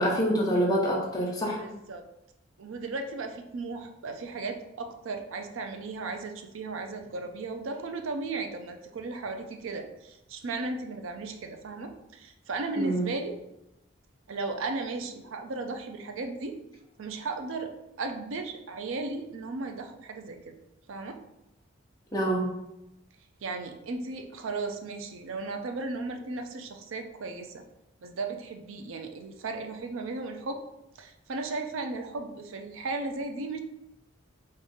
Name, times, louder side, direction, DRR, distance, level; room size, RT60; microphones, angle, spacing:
voice 1, 0.0-1.6 12.8-13.1 22.1-22.5, right 1 dB, 20° left, -3 dB, 0.7 m, -26 dB
voice 2, 1.6-2.0 2.6-13.3 14.3-16.6 17.0-17.7 18.0-20.5 20.9-21.2 23.4-27.6 28.0-30.6 31.0-33.6, right 3 dB, 70° right, 5 dB, 0.5 m, -35 dB
3.7 x 2.6 x 3.8 m, 0.88 s
head